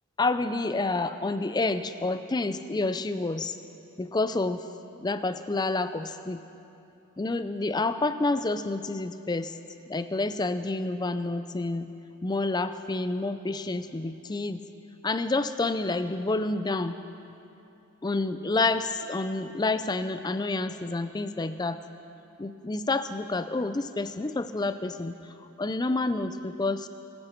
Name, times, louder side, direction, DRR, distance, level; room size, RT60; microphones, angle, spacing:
voice 1, 0.2-3.6 4.0-4.6 5.0-6.4 7.2-9.6 9.9-11.9 12.2-14.6 15.0-17.0 18.0-21.8 22.4-25.2 25.6-26.9, left 2 dB, 20° left, 11 dB, 0.4 m, -28 dB
25.5 x 9.7 x 4.5 m, 2.8 s
head